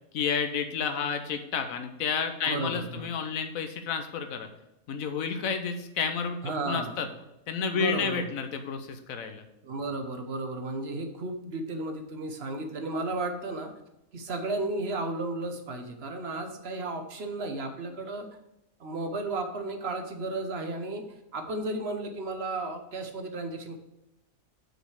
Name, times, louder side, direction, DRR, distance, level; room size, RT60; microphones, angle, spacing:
voice 1, 0.1-4.5 4.9-6.4 6.6-7.1 7.5-9.4, left 6 dB, 70° left, 7 dB, 1.2 m, -30 dB
voice 2, 2.4-3.0 6.4-7.0 7.7-8.3 9.6-13.7 14.1-18.3 18.8-21.0 21.3-23.8, right 2 dB, 50° right, 6 dB, 1.1 m, -33 dB
6.4 x 5.1 x 6.3 m, 0.87 s
omnidirectional pair, 1.6 m